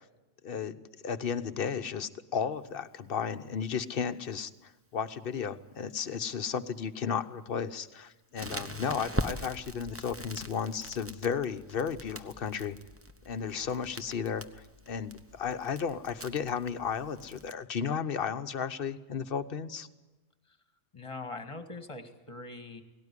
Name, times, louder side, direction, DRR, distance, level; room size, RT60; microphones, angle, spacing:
voice 1, 0.4-0.8 1.0-12.8 13.3-19.9, left 7 dB, 50° left, 10 dB, 1.0 m, -34 dB
Crackle, 8.4-17.5, right 1 dB, 10° right, 0.8 m, -42 dB
voice 2, 20.9-22.8, left 3 dB, 25° left, 8 dB, 1.8 m, -42 dB
18.0 x 17.5 x 9.8 m, 1.1 s
omnidirectional pair, 1.4 m